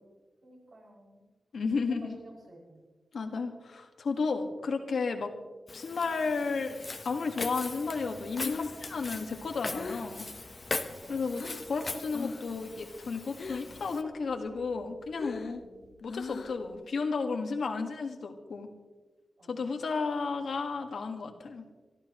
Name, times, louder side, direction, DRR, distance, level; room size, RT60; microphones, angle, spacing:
voice 1, 0.4-1.2 1.8-2.8 11.0-11.2 15.6-16.0 19.4-19.5, right 1 dB, 60° right, -4 dB, 6.1 m, -52 dB
voice 2, 1.5-2.2 3.1-5.3 5.7-10.2 11.1-15.6 16.0-18.7 19.5-21.6, left 4 dB, 75° left, 4 dB, 1.7 m, -33 dB
Walk footsteps, 5.7-14.0, left 3 dB, 30° left, 0.9 m, -40 dB
Breathing, 8.4-11.7 12.1-12.6 12.8-13.9 14.2-16.8, left 4 dB, 55° left, 0.7 m, -40 dB
26.0 x 13.0 x 3.1 m, 1.3 s
wide cardioid pair, 160°, 0 cm